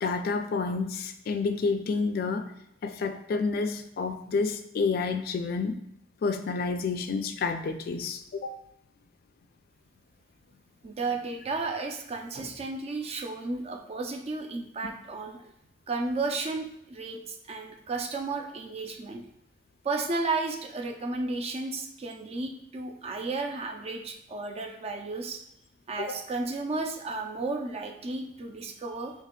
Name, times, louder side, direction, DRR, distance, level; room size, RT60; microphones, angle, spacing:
voice 1, 0.0-2.5 2.8-5.7 6.2-8.6 26.1-26.2, left 4 dB, 55° left, 8 dB, 0.3 m, -29 dB
voice 2, 10.8-15.5 15.9-19.2 19.8-25.4 25.9-29.1, right 3 dB, 35° right, 4 dB, 0.4 m, -33 dB
3.2 x 2.9 x 3.6 m, 0.77 s
head